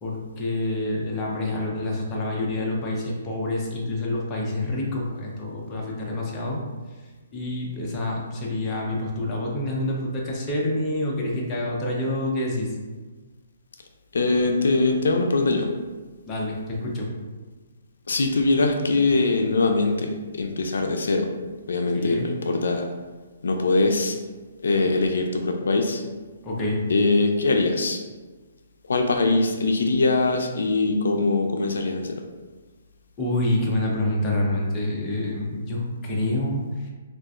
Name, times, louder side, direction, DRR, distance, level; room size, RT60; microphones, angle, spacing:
voice 1, 0.0-6.6 7.3-12.7 16.3-17.1 21.9-22.3 26.4-26.8 33.2-36.9, left 1 dB, 20° left, -3 dB, 0.5 m, -27 dB
voice 2, 14.1-15.7 18.1-21.3 21.7-22.9 23.4-24.2 24.6-26.0 26.9-28.0 28.9-32.2, left 3 dB, 85° left, 4 dB, 0.4 m, -22 dB
3.8 x 2.4 x 2.4 m, 1.3 s
hypercardioid pair, 165°, 0 cm